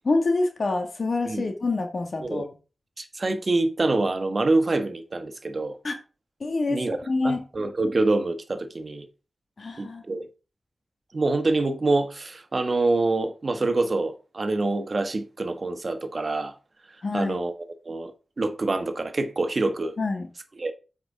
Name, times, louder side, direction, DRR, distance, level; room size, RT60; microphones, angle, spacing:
voice 1, 0.0-2.5 5.8-6.0 6.4-7.5 9.6-10.0 17.0-17.4 20.0-20.3, left 3 dB, 60° left, 1.9 m, -26 dB
voice 2, 3.0-5.8 6.7-7.0 7.2-9.1 9.8-10.3 11.1-16.5 17.1-17.5 17.8-19.9 20.6-20.7, right 2 dB, 50° right, 1.3 m, -26 dB
8.0 x 5.1 x 4.9 m
cardioid pair, 60°, 0 cm